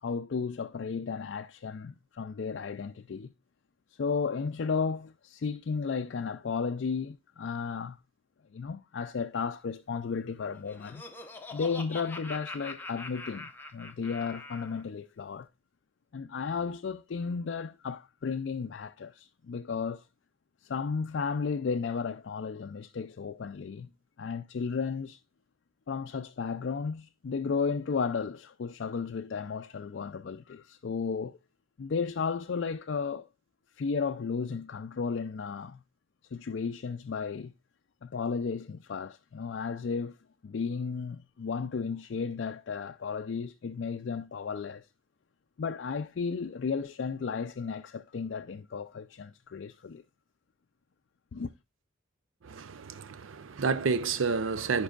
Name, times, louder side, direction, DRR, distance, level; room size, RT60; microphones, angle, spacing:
voice 1, 0.0-3.3 3.9-8.0 8.5-11.0 11.5-15.5 16.1-20.1 20.6-23.9 24.2-25.2 25.9-31.4 31.8-33.3 33.8-35.8 36.3-37.5 38.0-40.2 40.4-44.9 45.6-50.0 51.3-51.5, left 5 dB, 60° left, 0.4 m, -34 dB
Laughter, 10.4-14.8, left 2 dB, 10° left, 0.8 m, -44 dB
voice 2, 52.5-54.8, right 4 dB, 75° right, 0.5 m, -30 dB
15.5 x 5.3 x 2.4 m
head